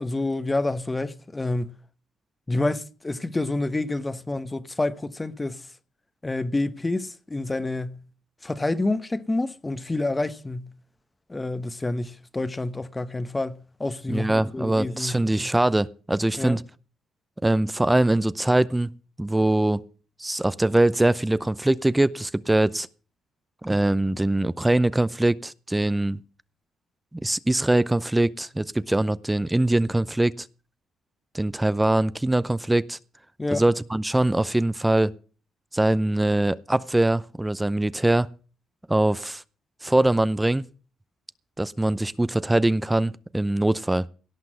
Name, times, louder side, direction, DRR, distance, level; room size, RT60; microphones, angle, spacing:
voice 1, 0.0-1.7 2.5-5.7 6.2-8.0 8.4-10.7 11.3-15.2 16.4-16.6 33.4-33.6, left 2 dB, 20° left, 1.0 m, -28 dB
voice 2, 14.1-16.6 17.4-18.9 19.2-19.8 20.2-22.9 23.6-26.2 27.1-30.5 31.3-33.0 33.5-35.1 35.7-38.3 38.9-39.4 39.8-40.7 41.6-44.0, right 1 dB, 10° right, 0.6 m, -22 dB
17.5 x 5.9 x 7.7 m
cardioid pair, 90°, 0 cm